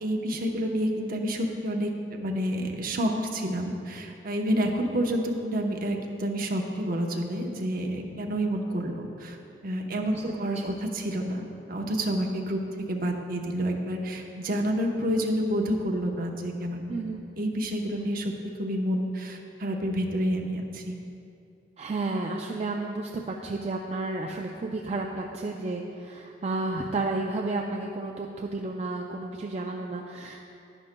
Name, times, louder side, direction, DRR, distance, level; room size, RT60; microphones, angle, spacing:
voice 1, 0.0-9.4 9.6-11.4 11.7-12.6 12.9-16.8 17.4-18.3 18.6-20.9, equal, 55° right, 1 dB, 0.9 m, -29 dB
voice 2, 16.9-17.2 21.8-30.4, right 2 dB, 40° right, 1 dB, 0.4 m, -32 dB
11.0 x 11.0 x 2.2 m, 2.5 s
head